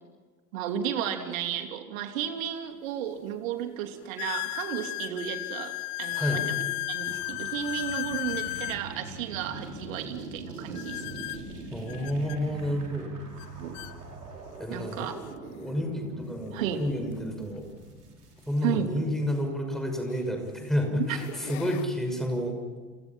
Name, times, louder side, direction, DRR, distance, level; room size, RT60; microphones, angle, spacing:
voice 1, 0.5-5.7 6.0-11.0 13.6-13.8 14.7-15.2 16.5-16.8 18.6-18.9 20.9-21.2, right 9 dB, 55° right, 6 dB, 2.8 m, -33 dB
sound 1, 2.5-2.6 3.2-3.3 4.2-8.8 10.7-12.4 13.4-13.5 13.7-13.9 14.7-14.8 17.0-17.1 19.2-19.3 20.0-20.4 20.9-21.8, left 19 dB, 40° left, 1.0 m, -34 dB
sound 2, 7.0-18.6, right 2 dB, 75° right, 6.0 m, -43 dB
voice 2, 11.7-13.1 14.6-15.1 15.6-17.7 18.5-22.6, equal, ahead, 3 dB, 6.0 m, -30 dB
30.0 x 27.0 x 5.9 m, 1.4 s
figure-of-eight pair, 90°, 47 cm